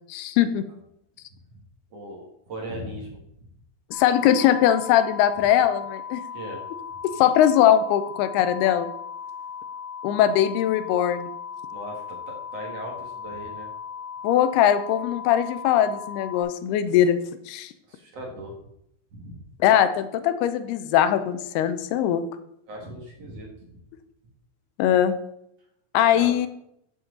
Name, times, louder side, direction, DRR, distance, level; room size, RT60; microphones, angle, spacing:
voice 1, 0.1-0.7 3.9-6.2 7.2-8.9 10.0-11.3 14.2-17.2 17.5-17.7 19.6-22.3 24.8-25.1 25.9-26.5, left 10 dB, 90° left, 11 dB, 2.8 m, -21 dB
voice 2, 1.9-3.2 6.3-6.6 11.7-13.7 17.9-18.6 19.1-19.4 22.7-23.8 26.1-26.3, right 1 dB, 50° right, 0 dB, 2.5 m, -38 dB
sound 1, 3.9-16.4, left 7 dB, 10° right, 4.1 m, -37 dB
14.0 x 7.6 x 3.9 m, 0.76 s
omnidirectional pair, 4.4 m